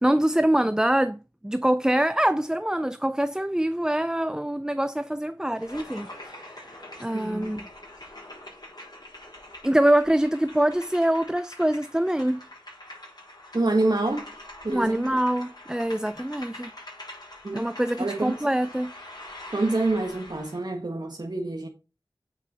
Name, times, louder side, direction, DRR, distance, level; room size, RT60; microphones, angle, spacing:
voice 1, 0.0-6.6 7.0-7.6 9.6-12.4 14.7-16.7 17.5-18.9, right 1 dB, 10° right, 0.4 m, -24 dB
sound 1, 5.6-20.6, left 1 dB, 50° left, 5.4 m, -44 dB
voice 2, 7.1-7.6 13.5-14.3 14.6-15.2 17.4-17.7 18.0-18.5 19.5-21.7, right 2 dB, 55° right, 1.4 m, -27 dB
8.7 x 5.4 x 4.2 m
wide cardioid pair, 45°, 9 cm